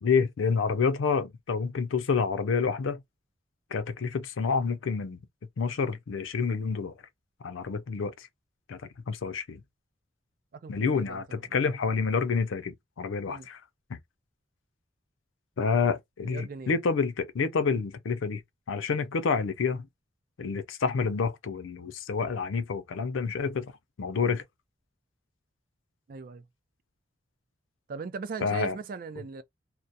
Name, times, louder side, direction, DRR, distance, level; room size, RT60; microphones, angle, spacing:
voice 1, 0.0-3.0 3.7-5.2 5.6-6.9 7.4-8.3 8.7-9.6 10.7-13.6 13.9-14.0 15.6-18.4 18.7-19.9 20.4-23.7 24.0-24.4 28.4-28.8, left 5 dB, 90° left, 0.5 m, -28 dB
voice 2, 10.5-11.4 13.3-13.5 16.2-16.8 26.1-26.4 27.9-29.4, right 5 dB, 45° right, 0.4 m, -39 dB
2.3 x 2.0 x 2.6 m
head